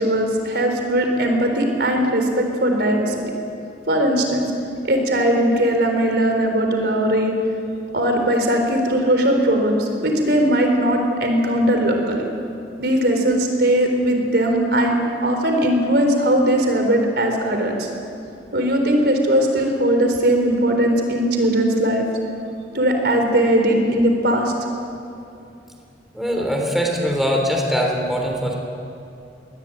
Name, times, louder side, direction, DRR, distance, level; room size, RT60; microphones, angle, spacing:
voice 1, 0.0-3.2 3.9-4.4 4.8-7.3 7.9-12.3 12.8-15.0 15.2-17.9 18.5-22.1 22.7-24.5, right 1 dB, 65° right, 3 dB, 4.0 m, -19 dB
voice 2, 26.1-28.6, equal, ahead, 0 dB, 3.4 m, -22 dB
23.0 x 20.0 x 8.9 m, 2.6 s
head